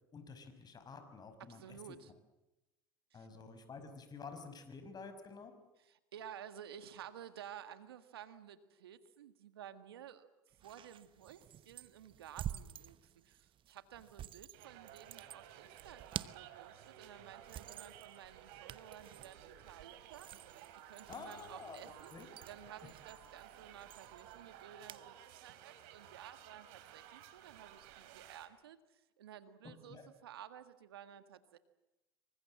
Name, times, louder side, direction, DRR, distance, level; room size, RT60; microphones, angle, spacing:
voice 1, 0.1-1.8 3.1-5.5 21.1-21.8 22.1-22.3 29.9-30.1, left 4 dB, 35° left, 9 dB, 5.8 m, -50 dB
voice 2, 1.5-2.1 3.1-3.3 5.8-20.3 20.7-22.1 22.5-31.6, right 9 dB, 85° right, 11 dB, 1.7 m, -54 dB
sound 1, 10.5-25.1, right 11 dB, 45° right, 1.0 m, -50 dB
sound 2, 14.5-28.5, right 11 dB, 70° right, 3.3 m, -56 dB
27.0 x 24.5 x 7.6 m, 0.98 s
hypercardioid pair, 80°, 12 cm